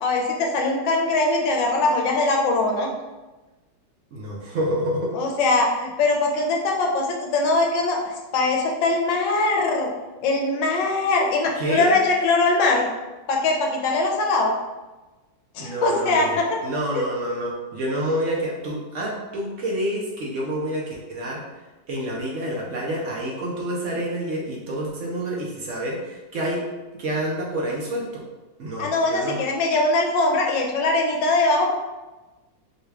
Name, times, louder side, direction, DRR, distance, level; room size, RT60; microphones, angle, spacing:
voice 1, 0.0-2.9 5.1-8.0 8.3-9.9 10.2-12.8 13.3-14.5 15.5-16.5 16.9-17.0 28.8-31.7, left 2 dB, 75° left, 1 dB, 1.3 m, -21 dB
voice 2, 4.1-5.2 11.5-12.0 15.6-21.4 21.9-26.7 27.0-28.2 28.6-29.4, right 1 dB, 70° right, -3 dB, 0.7 m, -28 dB
4.3 x 2.3 x 3.3 m, 1.1 s
omnidirectional pair, 2.1 m